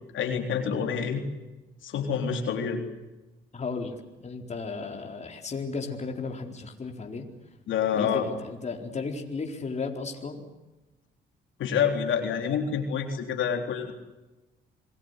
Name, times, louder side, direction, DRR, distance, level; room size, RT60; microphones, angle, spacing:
voice 1, 0.1-1.2 1.8-2.8 7.7-8.2 11.6-13.9, left 7 dB, 75° left, 4 dB, 3.8 m, -27 dB
voice 2, 3.5-7.2 7.9-10.4, left 4 dB, 35° left, 3 dB, 4.2 m, -34 dB
27.5 x 20.5 x 8.2 m, 1.1 s
cardioid pair, 90°, 20 cm